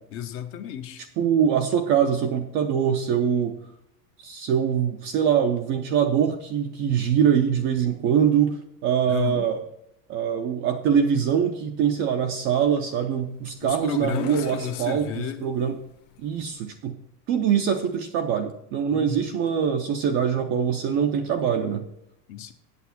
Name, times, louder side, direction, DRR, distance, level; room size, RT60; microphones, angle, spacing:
voice 1, 0.1-1.1 9.1-9.5 13.6-15.4 18.9-19.3 22.3-22.5, left 10 dB, 30° left, 9 dB, 0.5 m, -32 dB
voice 2, 1.2-3.6 4.2-9.6 10.1-15.8 16.2-16.9 17.3-21.9, right 8 dB, 30° right, 5 dB, 0.4 m, -23 dB
sound 1, 13.0-16.7, left 9 dB, 50° left, 1.1 m, -45 dB
8.3 x 7.7 x 5.8 m, 0.76 s
supercardioid pair, 150°, 49 cm